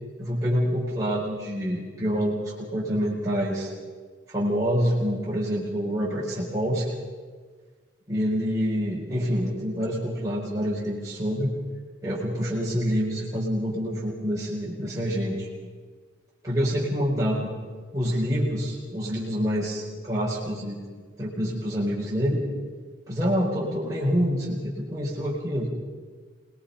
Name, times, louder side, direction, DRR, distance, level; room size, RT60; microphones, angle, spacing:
voice 1, 0.2-3.7 4.3-6.9 8.1-11.5 12.0-15.5 16.4-17.5 17.9-20.8 21.2-22.5 23.1-25.7, equal, 15° right, -7 dB, 4.5 m, -27 dB
26.0 x 20.5 x 5.7 m, 1.5 s
head